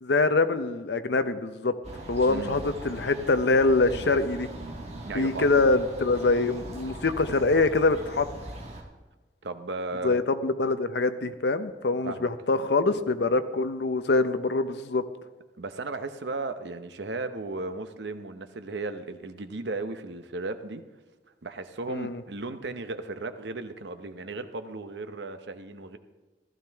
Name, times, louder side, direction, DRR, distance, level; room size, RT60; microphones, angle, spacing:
voice 1, 0.0-1.7 2.1-4.5 5.1-8.3 10.0-15.0 21.9-22.2, left 3 dB, 70° left, 11 dB, 0.7 m, -24 dB
sound 1, 1.8-8.8, right 1 dB, 35° right, 1.6 m, -40 dB
voice 2, 2.3-2.6 5.0-5.5 9.4-10.2 12.0-12.3 15.6-20.8 21.4-26.0, right 3 dB, 75° right, 9 dB, 0.8 m, -35 dB
15.0 x 13.0 x 3.5 m, 1.2 s
head